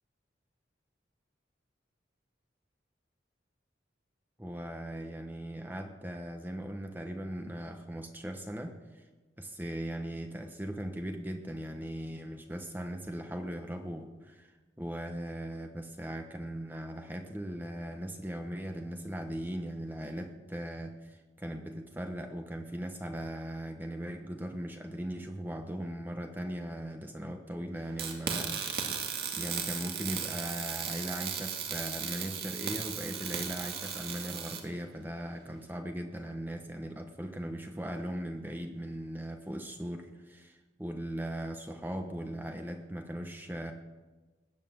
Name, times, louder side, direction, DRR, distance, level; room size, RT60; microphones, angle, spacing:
voice 1, 4.4-9.1 9.4-14.5 14.8-28.9 29.4-43.7, right 1 dB, 10° right, 4 dB, 1.0 m, -39 dB
sound 1, 28.0-34.6, right 7 dB, 55° right, 2.1 m, -36 dB
20.0 x 8.3 x 7.9 m, 1.2 s
head